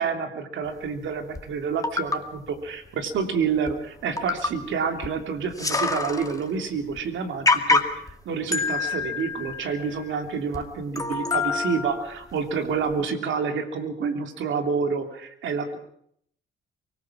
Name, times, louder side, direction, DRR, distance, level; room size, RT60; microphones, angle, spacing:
voice 1, 0.0-15.8, right 6 dB, 75° right, 6 dB, 3.1 m, -28 dB
sound 1, 1.4-1.5 1.8-2.2 3.2-3.3 3.7-3.8 4.2-4.6 5.0-5.1 5.4-6.4 6.9-7.0 7.5-8.1 8.5-10.1 10.5-10.6 11.0-12.3 12.9-13.0, left 4 dB, 15° left, 2.2 m, -26 dB
24.0 x 19.5 x 6.1 m, 0.68 s
cardioid pair, 90°, 20 cm